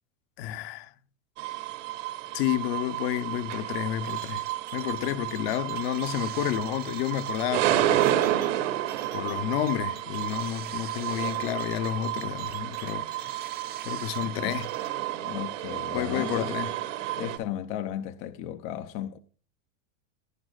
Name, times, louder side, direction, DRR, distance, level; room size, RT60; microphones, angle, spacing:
voice 1, 0.4-0.9 2.3-4.4 4.7-8.1 8.4-8.5 9.1-13.5 13.8-14.7 15.9-16.7, left 12 dB, 50° left, 0.9 m, -30 dB
sound 1, 1.4-17.4, right 13 dB, 65° right, 2.3 m, -31 dB
sound 2, 4.1-14.9, right 10 dB, 25° right, 0.8 m, -46 dB
voice 2, 14.2-14.6 15.1-16.6 17.2-19.2, left 11 dB, 30° left, 0.6 m, -35 dB
18.0 x 9.7 x 2.4 m
supercardioid pair, 165°, 40 cm